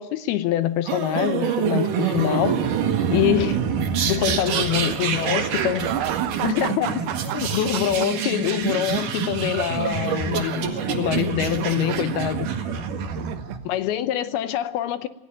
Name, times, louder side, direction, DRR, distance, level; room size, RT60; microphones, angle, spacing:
voice 1, 0.0-2.6 3.1-3.6 4.1-5.9 6.4-7.0 7.3-12.6 13.7-15.1, left 12 dB, 75° left, 2.6 m, -25 dB
sound 1, 0.9-13.6, right 7 dB, 55° right, 3.0 m, -26 dB
voice 2, 4.5-8.1 13.2-13.6, right 11 dB, 75° right, 3.2 m, -32 dB
27.0 x 16.5 x 9.0 m
omnidirectional pair, 5.0 m